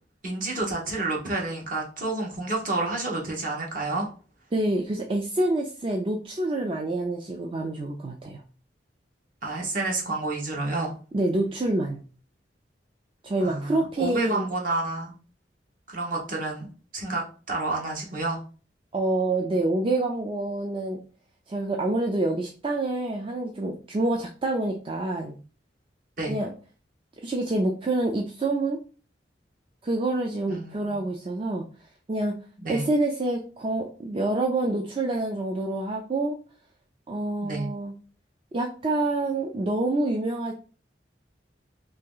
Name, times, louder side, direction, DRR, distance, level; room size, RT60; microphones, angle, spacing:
voice 1, 0.2-4.1 9.4-10.9 13.4-15.1 15.9-16.7 16.9-18.4 26.2-26.4 30.5-31.1 32.6-32.9 37.4-37.7, right 2 dB, 50° right, 0 dB, 1.0 m, -29 dB
voice 2, 4.5-8.4 11.1-12.0 13.2-14.5 18.9-21.0 21.5-25.4 26.3-26.5 27.2-28.8 29.8-31.6 32.1-32.4 32.7-36.4 37.1-37.9 38.5-40.5, right 2 dB, 30° right, 1 dB, 0.4 m, -27 dB
3.0 x 2.8 x 3.7 m, 0.38 s
head